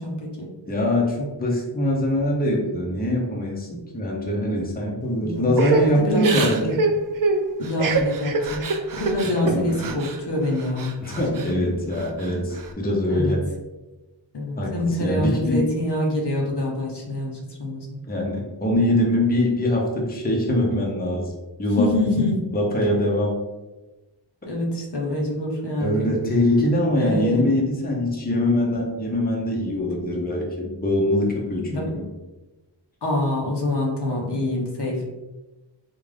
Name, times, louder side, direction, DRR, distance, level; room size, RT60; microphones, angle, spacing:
voice 1, 0.0-0.5 5.2-5.5 5.9-6.8 7.6-8.6 8.9-11.0 11.3-11.5 13.1-13.4 14.3-17.9 21.8-22.4 24.5-26.1 27.0-27.4 31.6-31.9 33.0-35.1, left 1 dB, 65° left, -1 dB, 0.9 m, -25 dB
voice 2, 0.7-6.8 9.4-9.7 11.0-13.5 14.6-14.7 15.0-15.6 18.1-21.3 21.6-21.9 22.5-23.4 25.8-32.1, left 1 dB, 20° left, -2 dB, 0.7 m, -23 dB
Crying sobbing / Breathing, 5.6-10.2 10.6-11.5 11.9-12.7, right 3 dB, 50° right, 0.4 m, -25 dB
3.7 x 2.4 x 3.3 m, 1.1 s
wide cardioid pair, 90°, 44 cm